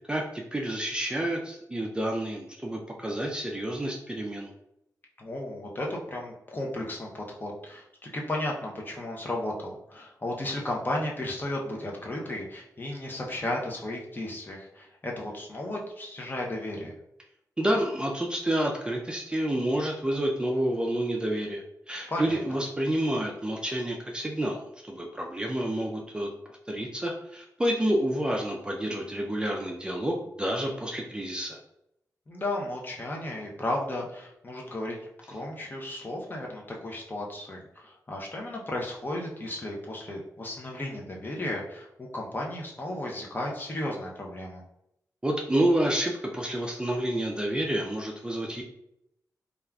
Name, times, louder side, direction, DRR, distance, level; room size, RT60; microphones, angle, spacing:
voice 1, 0.0-4.5 17.6-24.6 24.9-26.3 26.7-31.6 45.2-48.6, right 1 dB, 15° right, -1 dB, 0.3 m, -29 dB
voice 2, 5.2-16.9 22.1-22.4 32.3-35.0 35.3-44.6, left 1 dB, 30° left, -1 dB, 0.6 m, -34 dB
3.4 x 2.4 x 2.2 m, 0.79 s
wide cardioid pair, 105°, 7 cm